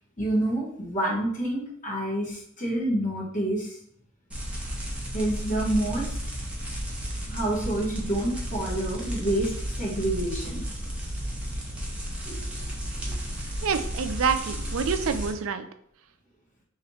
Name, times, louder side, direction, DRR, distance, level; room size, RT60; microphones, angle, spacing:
voice 1, 0.2-3.8 5.1-6.2 7.3-10.6 12.2-12.4, right 1 dB, 35° left, -5 dB, 1.4 m, -28 dB
sound 1, 4.3-15.3, equal, 5° right, 0.8 m, -33 dB
voice 2, 13.6-15.7, right 6 dB, 65° right, 8 dB, 0.4 m, -27 dB
3.2 x 2.9 x 4.1 m, 0.67 s
head